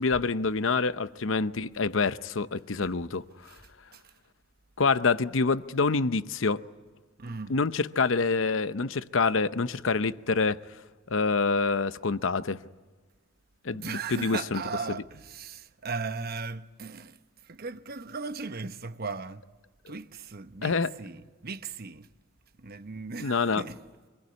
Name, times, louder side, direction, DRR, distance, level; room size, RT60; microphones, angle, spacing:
voice 1, 0.0-3.2 4.8-6.6 7.5-10.6 11.1-12.6 13.6-14.6 20.6-20.9 23.2-23.6, left 4 dB, 75° left, 0.8 m, -26 dB
voice 2, 7.2-7.5 13.7-17.2 17.5-19.4 19.9-22.1 22.6-23.8, right 4 dB, 50° right, 1.0 m, -37 dB
26.0 x 21.0 x 9.6 m
head